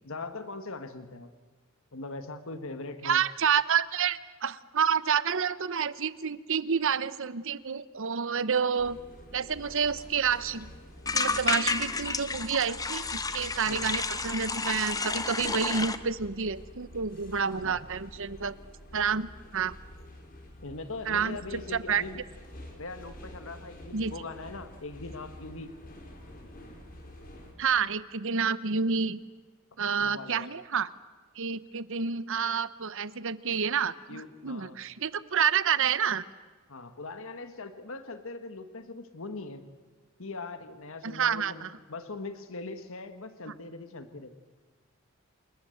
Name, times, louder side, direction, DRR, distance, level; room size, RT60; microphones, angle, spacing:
voice 1, 0.0-1.3 1.9-3.2 13.7-13.9 17.6-17.8 20.6-22.2 22.8-25.8 30.0-30.5 34.1-34.8 36.7-39.6 40.2-44.4, left 3 dB, 65° left, 9 dB, 1.6 m, -41 dB
voice 2, 3.0-9.0 9.3-10.7 11.1-18.5 18.9-19.3 19.5-19.7 21.1-22.0 23.9-24.1 27.6-29.2 29.8-30.9 31.4-36.2 41.0-41.7, right 6 dB, 65° right, 16 dB, 1.0 m, -29 dB
sound 1, 8.8-27.5, left 1 dB, 45° left, 4.8 m, -48 dB
sound 2, 9.7-9.8 10.0-10.1 10.3-10.6 11.1-16.0, left 4 dB, 15° left, 1.1 m, -31 dB
28.5 x 20.0 x 7.9 m, 1.4 s
head